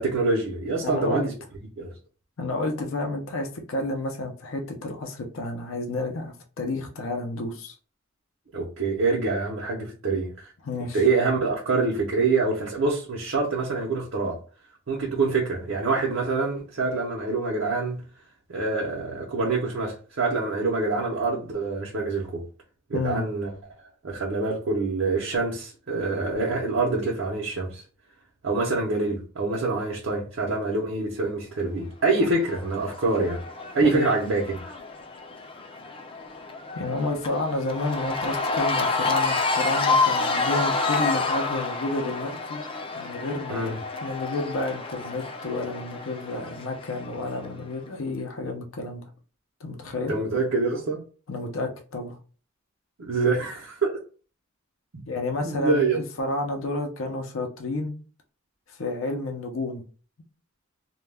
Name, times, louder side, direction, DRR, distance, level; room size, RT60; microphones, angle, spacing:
voice 1, 0.0-1.3 1.8-1.9 8.5-10.5 10.9-14.4 14.9-18.0 18.5-22.4 22.9-23.5 24.0-27.8 28.4-33.4 33.7-34.6 43.5-43.8 50.1-51.0 53.0-53.9 54.9-55.0 55.4-56.0, right 3 dB, 75° right, 0.6 m, -25 dB
voice 2, 0.8-1.3 2.4-7.8 10.6-11.1 22.9-23.2 33.9-34.1 36.7-42.6 42.9-43.7 44.0-49.0 49.6-50.1 51.3-52.2 55.1-57.9 58.7-59.8, left 2 dB, 85° left, 0.5 m, -30 dB
Cheering / Crowd, 32.2-47.5, left 3 dB, 25° left, 0.4 m, -29 dB
2.2 x 2.1 x 3.3 m
head